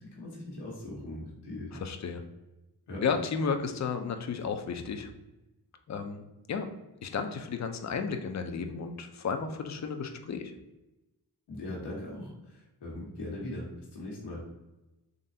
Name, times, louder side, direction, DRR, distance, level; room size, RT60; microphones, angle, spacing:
voice 1, 0.1-1.7 2.9-3.0 11.5-12.3 12.8-13.7 13.9-14.4, left 1 dB, 90° left, -4 dB, 1.3 m, -39 dB
voice 2, 1.7-2.2 3.0-5.1 5.9-6.7 7.0-10.5, left 5 dB, 45° left, 6 dB, 0.6 m, -33 dB
3.9 x 3.2 x 2.7 m, 1.0 s
cardioid pair, 70°, 40 cm